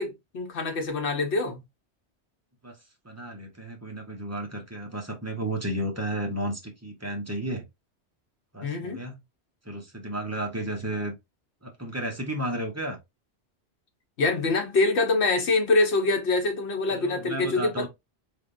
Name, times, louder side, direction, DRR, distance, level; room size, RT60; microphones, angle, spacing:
voice 1, 0.0-1.6 8.6-9.0 14.2-17.9, left 3 dB, 70° left, 1.3 m, -25 dB
voice 2, 3.0-7.6 8.5-9.2 9.6-11.1 11.6-13.0 16.9-17.9, right 1 dB, 15° right, 0.8 m, -33 dB
3.8 x 3.4 x 2.6 m
omnidirectional pair, 1.2 m